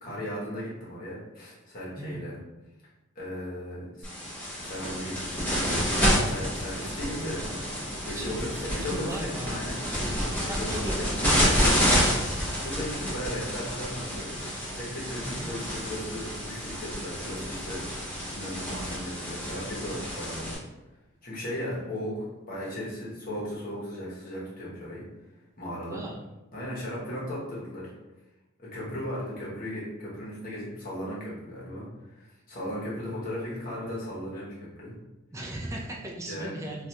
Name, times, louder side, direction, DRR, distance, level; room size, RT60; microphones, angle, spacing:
voice 1, 0.0-2.4 3.1-3.8 4.6-5.9 6.2-7.4 8.0-11.7 12.6-14.3 14.7-17.8 18.3-20.6 21.2-25.0 25.6-26.0 26.5-27.9 28.6-31.8 32.1-34.5 34.8-34.9 36.2-36.6, left 1 dB, 45° left, -6 dB, 1.1 m, -36 dB
voice 2, 2.0-2.3 8.1-8.5 8.9-9.5 10.5-11.5 15.2-15.5 21.6-21.9 25.9-26.2 35.3-36.9, right 1 dB, 15° right, -2 dB, 0.4 m, -37 dB
sound 1, 4.0-20.5, equal, 10° left, 0.9 m, -29 dB
3.2 x 2.5 x 2.8 m, 1.0 s
head